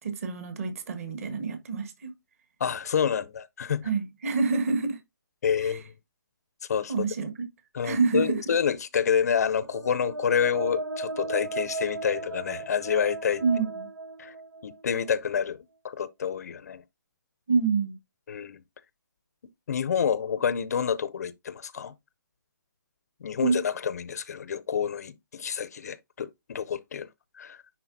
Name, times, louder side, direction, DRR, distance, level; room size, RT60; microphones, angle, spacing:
voice 1, 0.0-2.1 3.8-5.0 5.6-5.8 6.9-7.3 7.8-8.4 13.4-13.9 17.5-18.0 23.4-23.6, right 4 dB, 40° right, 1.6 m, -27 dB
voice 2, 2.6-3.9 5.4-5.9 6.7-6.9 7.7-13.4 14.2-14.3 14.6-16.8 18.3-18.6 19.7-21.9 23.2-27.1 27.4-27.6, left 7 dB, 50° left, 0.5 m, -28 dB
sound 1, 9.3-15.1, right 2 dB, 85° right, 0.8 m, -36 dB
10.0 x 3.9 x 2.6 m
hypercardioid pair, 155°, 11 cm